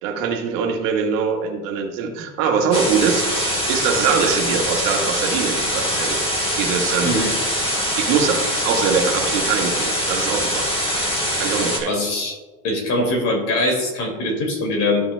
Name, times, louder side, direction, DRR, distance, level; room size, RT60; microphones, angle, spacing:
voice 1, 0.0-6.2 6.6-7.3 8.0-10.7 11.4-11.9, right 6 dB, 65° right, 2 dB, 1.6 m, -22 dB
sound 1, 2.7-11.8, equal, 15° left, 1.3 m, -23 dB
voice 2, 7.0-7.4 11.9-12.4 12.6-15.1, left 2 dB, 40° left, 1 dB, 2.3 m, -22 dB
14.0 x 6.0 x 2.2 m, 1.2 s
supercardioid pair, 155°, 41 cm